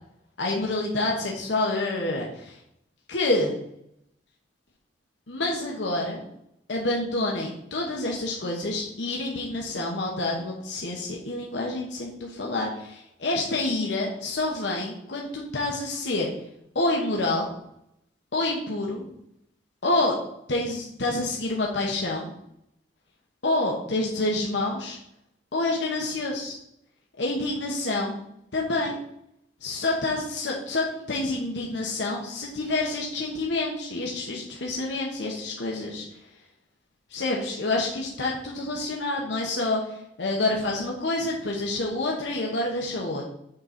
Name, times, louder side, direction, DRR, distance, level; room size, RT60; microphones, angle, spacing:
voice 1, 0.4-2.6 3.1-3.5 5.3-6.2 6.7-16.3 16.7-17.5 18.3-19.1 19.8-20.2 20.5-22.3 23.4-25.0 25.5-26.5 27.2-28.2 28.5-29.0 29.6-36.1 37.1-43.2, left 2 dB, 75° left, -2 dB, 1.1 m, -28 dB
6.5 x 3.9 x 5.8 m, 0.76 s
head